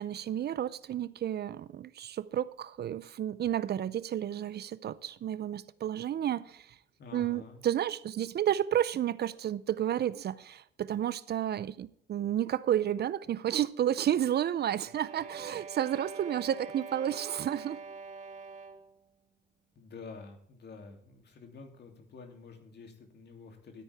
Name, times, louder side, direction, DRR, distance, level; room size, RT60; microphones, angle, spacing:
voice 1, 0.0-6.8 7.1-17.8, right 10 dB, 55° right, 18 dB, 0.6 m, -31 dB
voice 2, 7.0-7.6 19.7-23.8, left 4 dB, 55° left, 4 dB, 3.0 m, -49 dB
sound 1, 14.8-19.0, right 4 dB, 40° right, 1.4 m, -45 dB
13.0 x 9.4 x 3.5 m, 0.64 s
cardioid pair, 90°, 20 cm